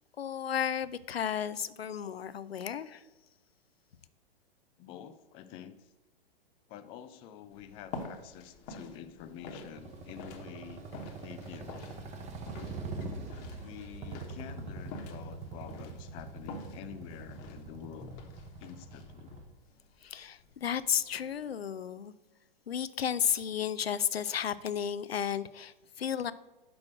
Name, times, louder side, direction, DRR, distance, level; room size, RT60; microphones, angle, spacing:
voice 1, 0.2-3.0 20.0-22.1 22.7-26.3, left 8 dB, 85° left, 15 dB, 0.5 m, -33 dB
voice 2, 4.8-5.9 6.7-10.8 11.2-11.8 13.6-18.1 18.6-19.3, left 9 dB, 20° left, 10 dB, 0.3 m, -48 dB
sound 1, 7.5-21.5, left 3 dB, 35° left, 1.2 m, -48 dB
sound 2, 9.8-19.4, right 3 dB, 25° right, 0.9 m, -43 dB
6.1 x 4.7 x 6.2 m, 1.1 s
figure-of-eight pair, 110°, 30 cm